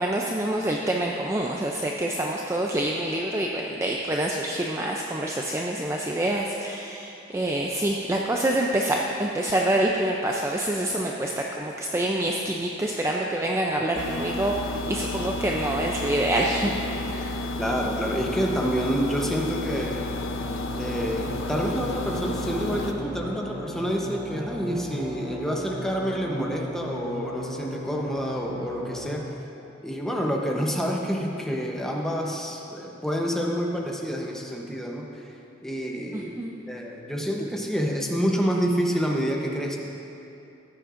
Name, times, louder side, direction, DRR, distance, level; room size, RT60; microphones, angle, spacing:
voice 1, 0.0-16.7 17.1-17.4 36.1-36.5, right 1 dB, 15° right, -1 dB, 0.4 m, -26 dB
sound 1, 14.0-22.9, left 2 dB, 90° left, 0.7 m, -31 dB
voice 2, 17.6-20.1 20.8-29.3 29.8-35.2 35.6-36.4 36.7-39.8, equal, ahead, -1 dB, 0.8 m, -28 dB
sound 2, 19.7-29.1, equal, 40° right, 1.8 m, -38 dB
15.0 x 9.6 x 2.5 m, 2.8 s
head